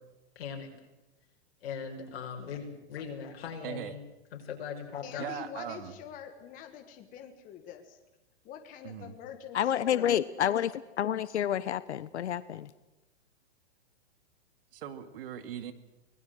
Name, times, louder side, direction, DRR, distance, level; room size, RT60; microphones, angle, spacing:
voice 1, 0.4-0.7 1.6-4.0 4.3-5.3, left 6 dB, 60° left, 5.7 m, -39 dB
voice 2, 3.6-4.0 5.2-5.9 8.8-9.2 14.7-15.7, right 9 dB, 55° right, 2.2 m, -39 dB
voice 3, 5.0-8.0 8.4-10.2, left 9 dB, 25° left, 1.6 m, -45 dB
voice 4, 9.5-12.7, left 10 dB, 85° left, 1.0 m, -29 dB
25.0 x 19.5 x 7.9 m
hypercardioid pair, 150°, 33 cm